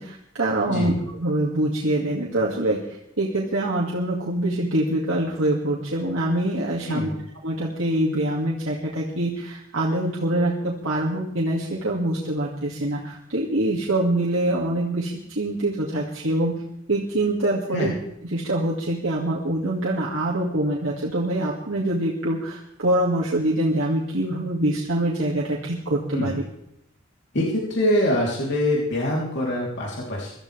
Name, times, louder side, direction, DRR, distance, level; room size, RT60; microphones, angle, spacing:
voice 1, 0.0-2.8 3.2-7.1 7.4-16.5 16.9-17.9 18.3-26.4, right 1 dB, 70° right, -5 dB, 2.3 m, -24 dB
voice 2, 6.9-7.2 17.7-17.9 26.1-26.4 27.3-30.3, left 1 dB, 60° left, -4 dB, 3.5 m, -24 dB
23.0 x 14.0 x 3.5 m, 0.79 s
head